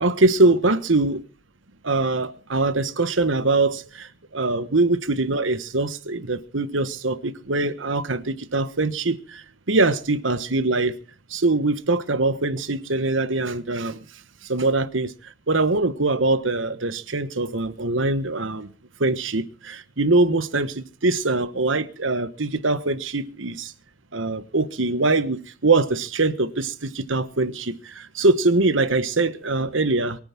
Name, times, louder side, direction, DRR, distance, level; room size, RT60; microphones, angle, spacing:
voice 1, 0.0-1.2 1.8-4.1 4.3-9.2 9.7-10.9 11.3-14.0 14.5-15.1 15.5-18.7 19.0-23.7 24.1-30.2, right 2 dB, 70° right, 1.3 m, -22 dB
23.0 x 8.9 x 6.1 m
head